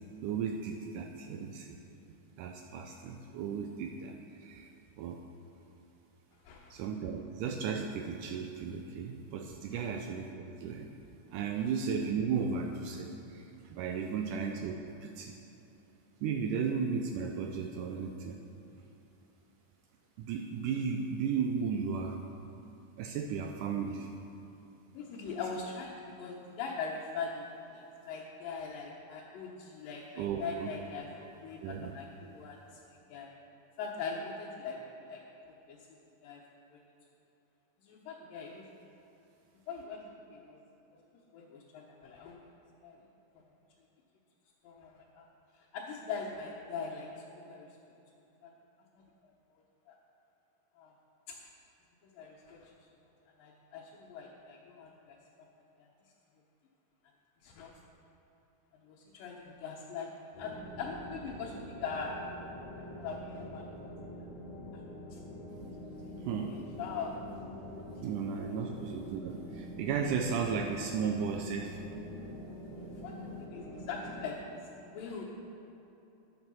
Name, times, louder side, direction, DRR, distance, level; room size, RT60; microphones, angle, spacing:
voice 1, 0.2-1.8 2.4-4.7 5.0-5.2 6.7-10.9 11.3-14.8 15.0-15.4 16.2-18.4 20.2-22.2 23.0-24.1 30.2-30.7 31.6-31.9 66.2-66.6 68.0-71.8, right 6 dB, 80° right, 4 dB, 2.0 m, -35 dB
voice 2, 6.4-6.8 9.7-9.9 11.6-11.7 14.1-14.3 24.9-33.3 33.8-35.2 35.7-35.8 36.2-36.4 36.7-36.8 37.8-38.6 39.7-40.6 41.3-42.4 42.8-43.1 44.6-45.2 45.5-47.8 48.4-48.5 49.2-49.3 49.9-50.0 50.8-50.9 51.3-51.4 52.1-52.7 53.4-55.2 57.4-57.7 58.8-62.2 62.7-63.7 65.1-65.2 66.1-67.2 68.4-68.6 72.9-75.2, left 5 dB, 90° left, -3 dB, 2.7 m, -42 dB
sound 1, 60.3-74.3, left 1 dB, 50° left, 3.3 m, -45 dB
9.7 x 9.1 x 6.3 m, 3.0 s
omnidirectional pair, 3.8 m